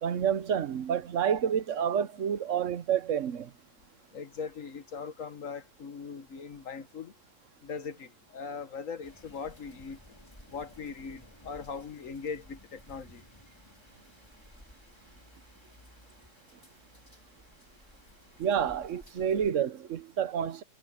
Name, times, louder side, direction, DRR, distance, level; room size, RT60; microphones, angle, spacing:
voice 1, 0.0-3.5 18.4-20.6, right 8 dB, 55° right, 1.1 m, -29 dB
voice 2, 4.1-7.1 7.6-10.0 10.5-13.2, left 5 dB, 50° left, 1.7 m, -40 dB
sound 1, 9.0-19.5, left 1 dB, 15° left, 3.9 m, -56 dB
omnidirectional pair, 1.8 m